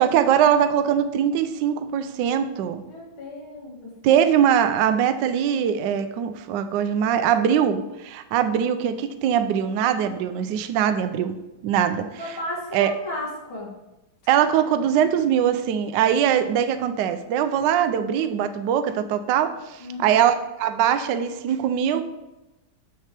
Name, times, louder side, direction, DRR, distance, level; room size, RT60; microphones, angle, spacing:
voice 1, 0.0-2.8 4.0-12.4 12.7-12.9 14.3-22.0, right 9 dB, 75° right, 10 dB, 1.0 m, -22 dB
voice 2, 2.8-4.2 12.2-13.7 19.8-20.2, left 2 dB, 70° left, -2 dB, 2.5 m, -35 dB
7.4 x 6.9 x 3.3 m, 0.99 s
omnidirectional pair, 2.4 m